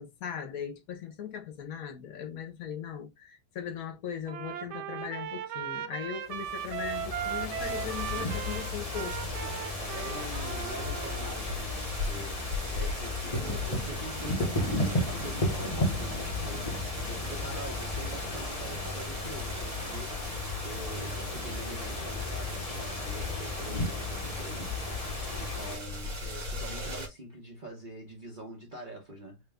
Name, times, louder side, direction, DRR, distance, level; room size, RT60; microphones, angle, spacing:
voice 1, 0.0-9.2, left 8 dB, 65° left, 1.1 m, -39 dB
Trumpet, 4.3-11.4, right 10 dB, 90° right, 0.6 m, -38 dB
sound 1, 6.3-25.8, left 2 dB, 30° left, 0.8 m, -34 dB
sound 2, 7.6-27.1, left 2 dB, 55° right, 1.8 m, -39 dB
voice 2, 9.9-20.2 20.6-24.8 25.4-29.4, right 1 dB, 35° right, 1.0 m, -44 dB
3.5 x 2.9 x 3.4 m
omnidirectional pair, 1.8 m